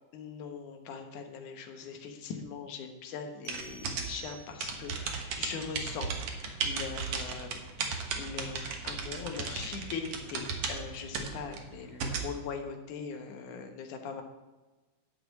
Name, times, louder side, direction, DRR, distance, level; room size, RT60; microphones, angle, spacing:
voice 1, 0.1-7.6 7.9-14.2, left 6 dB, 75° left, 5 dB, 2.6 m, -41 dB
sound 1, 3.4-5.0, right 3 dB, 40° left, 1.4 m, -50 dB
sound 2, 3.5-12.3, right 5 dB, 60° right, 2.0 m, -35 dB
11.5 x 4.8 x 8.2 m, 1.2 s
omnidirectional pair, 3.6 m